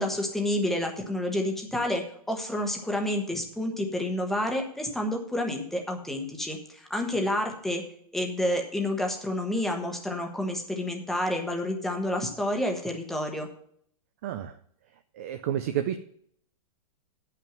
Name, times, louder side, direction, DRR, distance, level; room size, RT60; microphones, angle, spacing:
voice 1, 0.0-7.8 8.1-13.5, left 1 dB, ahead, 2 dB, 1.0 m, -29 dB
voice 2, 14.2-14.6 15.1-16.0, right 10 dB, 25° right, 9 dB, 0.3 m, -30 dB
8.9 x 5.8 x 7.3 m, 0.65 s
hypercardioid pair, 170°, 19 cm